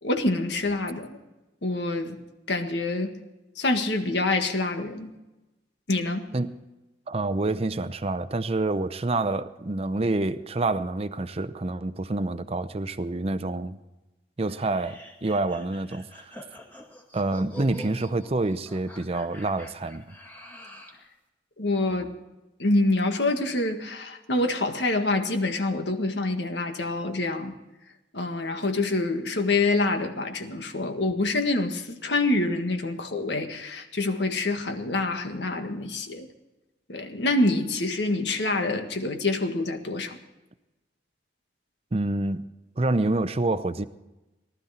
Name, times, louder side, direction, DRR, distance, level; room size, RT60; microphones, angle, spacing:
voice 1, 0.0-1.2 1.6-2.2 2.5-3.2 3.6-5.1 5.9-6.2 21.6-22.1 22.6-27.5 28.1-36.3 36.9-40.2, left 2 dB, 75° left, 1.7 m, -26 dB
voice 2, 6.3-6.6 7.1-13.8 14.4-16.3 17.1-20.0 41.9-42.5 42.8-43.8, right 2 dB, 35° right, 0.6 m, -27 dB
sound 1, 14.5-21.0, left 1 dB, 10° left, 2.0 m, -46 dB
19.0 x 12.5 x 4.3 m
head